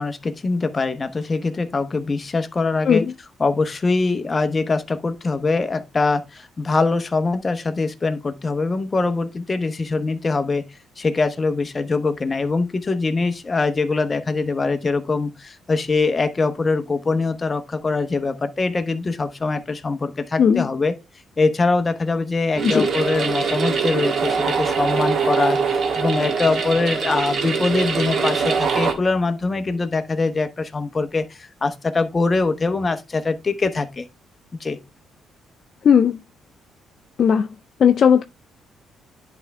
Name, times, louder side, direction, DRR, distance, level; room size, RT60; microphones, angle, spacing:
voice 1, 0.0-3.0 3.4-10.6 11.0-20.9 21.4-34.1 34.6-34.8, left 3 dB, 30° left, 0.9 m, -23 dB
sound 1, 22.5-28.9, right 5 dB, 60° right, 1.5 m, -23 dB
voice 2, 35.8-36.2 37.2-37.5 37.8-38.2, left 7 dB, 55° left, 0.4 m, -16 dB
10.5 x 3.5 x 3.3 m
cardioid pair, 90°, 0 cm